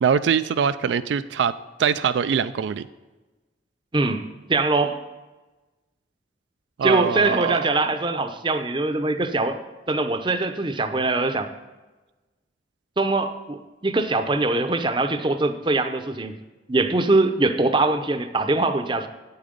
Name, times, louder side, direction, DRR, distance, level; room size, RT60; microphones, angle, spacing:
voice 1, 0.0-2.9 6.8-7.7, right 7 dB, 80° right, 13 dB, 0.3 m, -23 dB
voice 2, 3.9-5.0 6.8-11.5 13.0-16.4 16.7-19.1, right 2 dB, 25° right, 9 dB, 0.6 m, -23 dB
8.7 x 8.3 x 5.1 m, 1.2 s
head